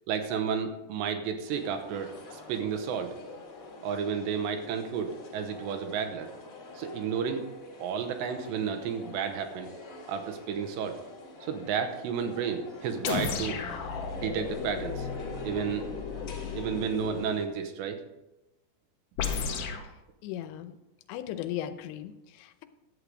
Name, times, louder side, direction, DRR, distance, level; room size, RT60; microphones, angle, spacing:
voice 1, 0.1-3.2 3.8-6.3 6.8-7.5 7.8-9.7 10.1-11.0 11.4-13.6 14.2-15.1 15.4-15.9 16.6-18.0, right 7 dB, 80° right, 7 dB, 3.1 m, -32 dB
sound 1, 1.5-17.5, left 3 dB, 40° left, 2.0 m, -46 dB
sound 2, 13.0-17.3 19.2-19.9, left 5 dB, 75° left, 2.0 m, -34 dB
voice 2, 20.2-20.8 21.1-22.7, left 11 dB, 90° left, 9 dB, 3.1 m, -37 dB
11.5 x 8.2 x 4.9 m, 0.96 s
omnidirectional pair, 5.1 m